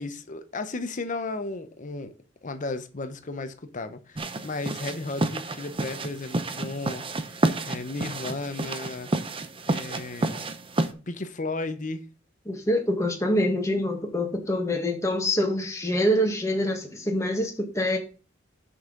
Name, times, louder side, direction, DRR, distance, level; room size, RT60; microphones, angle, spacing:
voice 1, 0.0-2.1 2.4-7.0 7.6-9.1 9.7-10.5 11.1-12.1, left 3 dB, 40° left, 0.9 m, -34 dB
sound 1, 4.2-10.9, right 2 dB, 25° right, 0.6 m, -30 dB
voice 2, 12.5-18.0, equal, 15° left, 1.8 m, -25 dB
6.3 x 5.5 x 6.5 m
head